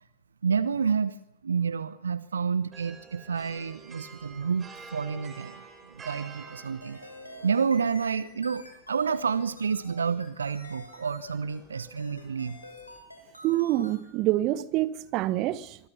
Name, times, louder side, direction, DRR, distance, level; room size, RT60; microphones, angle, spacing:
voice 1, 0.4-1.1 1.4-5.6 5.9-7.0 7.4-12.6, right 6 dB, 70° right, 0.9 m, -29 dB
sound 1, 2.7-13.0, right 5 dB, 20° right, 4.9 m, -50 dB
sound 2, 6.8-14.1, left 1 dB, 85° left, 6.5 m, -48 dB
voice 2, 13.4-15.8, right 15 dB, 40° right, 1.4 m, -26 dB
25.5 x 23.0 x 5.8 m
figure-of-eight pair, 90°, 0 cm